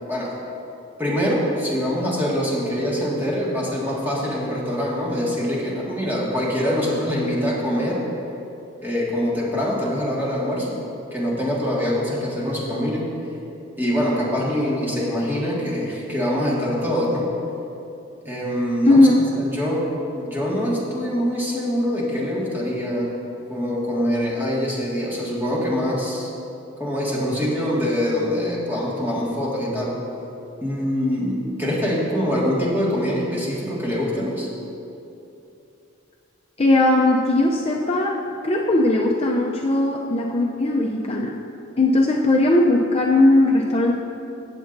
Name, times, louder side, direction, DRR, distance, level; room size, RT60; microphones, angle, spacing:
voice 1, 1.0-8.0 8.8-10.8 11.1-13.1 13.8-17.3 18.2-19.9 20.1-23.1 23.5-26.3 26.8-30.0 30.6-34.5, equal, 10° right, -6 dB, 1.9 m, -24 dB
voice 2, 18.9-19.2 36.6-41.4 41.8-44.0, left 2 dB, 30° left, -1 dB, 0.5 m, -18 dB
16.5 x 7.8 x 2.6 m, 2.7 s
head